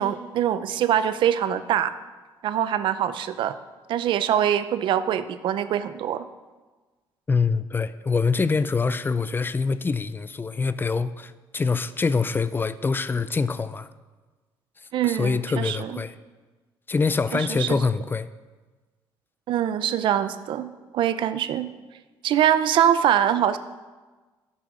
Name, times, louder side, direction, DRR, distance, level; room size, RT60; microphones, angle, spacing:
voice 1, 0.0-1.9 2.4-3.6 3.9-6.3 14.9-15.9 17.3-17.8 19.5-21.7 22.2-23.6, right 10 dB, 70° right, 0.6 m, -23 dB
voice 2, 7.3-13.9 14.8-16.2 16.9-18.3, left 4 dB, 25° left, 0.5 m, -25 dB
9.7 x 8.4 x 6.4 m
cardioid pair, 100°, 9 cm